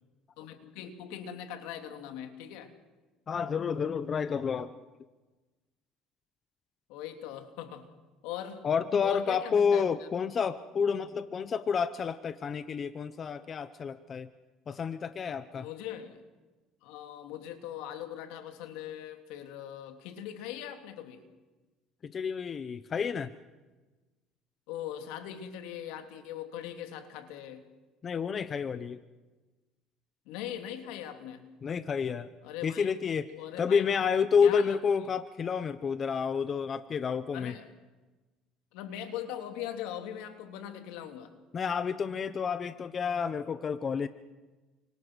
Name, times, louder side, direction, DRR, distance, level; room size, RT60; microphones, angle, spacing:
voice 1, 0.4-2.7 6.9-7.9 8.2-8.7 9.0-10.1 15.5-16.2 16.8-21.3 24.7-27.7 30.2-31.4 32.4-32.9 33.3-34.0 34.4-34.8 37.3-37.7 38.7-41.3, left 10 dB, 80° left, 6 dB, 3.2 m, -41 dB
voice 2, 3.3-4.8 8.6-14.3 14.7-15.7 22.0-23.3 28.0-29.0 31.6-32.3 32.6-37.5 41.5-44.1, left 6 dB, 35° left, 12 dB, 1.0 m, -29 dB
29.5 x 26.0 x 6.4 m, 1.2 s
cardioid pair, 120°, 0 cm